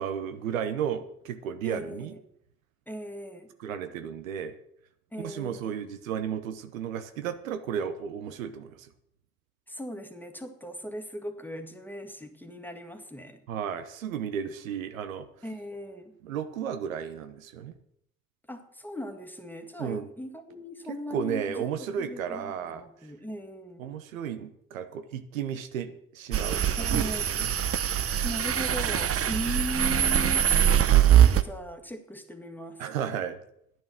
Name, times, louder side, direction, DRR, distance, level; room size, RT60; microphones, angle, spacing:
voice 1, 0.0-2.1 3.6-4.5 5.2-8.7 13.5-15.3 16.2-17.7 19.8-20.1 20.9-22.9 23.8-27.5 32.8-33.4, right 8 dB, 85° right, 10 dB, 0.8 m, -33 dB
voice 2, 1.6-2.2 2.9-3.5 5.1-5.8 9.7-13.4 15.4-16.1 18.5-21.7 22.0-23.9 26.8-27.5 28.2-30.4 31.2-32.8, equal, 5° left, 6 dB, 1.9 m, -38 dB
sound 1, 26.3-31.4, right 10 dB, 35° right, 0.9 m, -22 dB
10.5 x 9.2 x 6.3 m, 0.72 s
hypercardioid pair, 50°, 39 cm